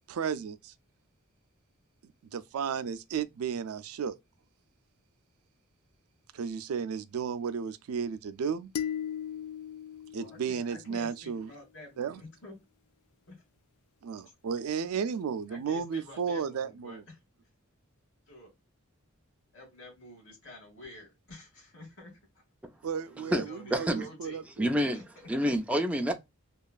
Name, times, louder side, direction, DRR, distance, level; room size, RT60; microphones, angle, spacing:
voice 1, 0.1-0.7 2.0-4.2 6.3-8.7 10.1-11.5 12.0-12.2 14.0-17.0 22.8-24.4, right 6 dB, 90° right, 0.4 m, -33 dB
sound 1, 8.7-11.2, left 9 dB, 85° left, 0.4 m, -37 dB
voice 2, 10.1-12.6 13.3-13.4 14.2-14.3 15.5-17.2 18.3-18.5 19.5-22.4 23.0-24.4 24.9-25.0, left 1 dB, 65° left, 1.4 m, -49 dB
voice 3, 23.3-24.1 24.6-25.0 25.3-26.1, equal, 5° right, 0.3 m, -28 dB
3.0 x 2.3 x 2.3 m
head